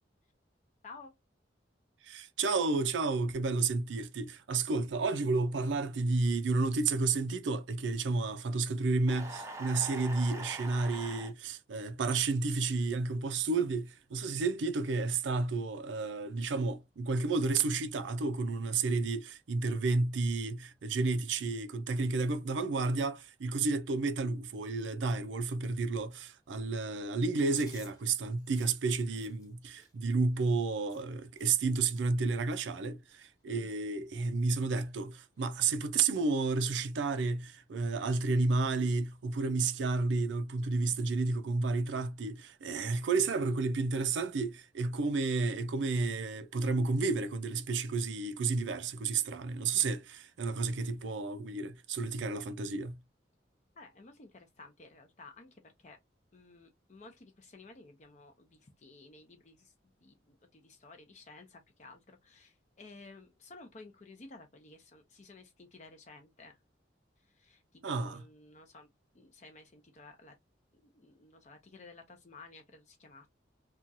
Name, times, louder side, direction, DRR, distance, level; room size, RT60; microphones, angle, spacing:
voice 1, 2.0-53.0 67.8-68.2, right 3 dB, 90° right, 0.4 m, -31 dB
sound 1, 9.1-11.3, right 2 dB, 15° right, 0.5 m, -43 dB
Chewing mastication, 27.4-31.7 31.9-32.2 32.5-33.4 33.7-34.0 34.2-34.9 35.3-35.5 36.5-36.9, left 2 dB, 20° left, 0.9 m, -58 dB
voice 2, 53.8-56.0 56.3-59.7 60.0-66.6 67.3-68.9 69.1-70.3 70.7-73.3, left 3 dB, 40° left, 0.5 m, -54 dB
2.9 x 2.3 x 2.6 m
head